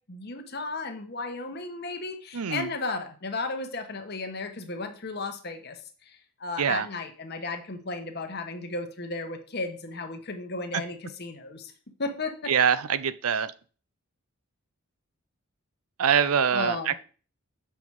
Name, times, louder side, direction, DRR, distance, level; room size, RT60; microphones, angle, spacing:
voice 1, 0.1-11.7 12.0-12.5 16.5-17.0, left 3 dB, 45° left, 7 dB, 1.1 m, -34 dB
voice 2, 2.3-2.7 6.6-6.9 12.5-13.5 16.0-17.0, right 7 dB, 80° right, 15 dB, 0.6 m, -24 dB
7.0 x 5.7 x 4.7 m, 0.39 s
head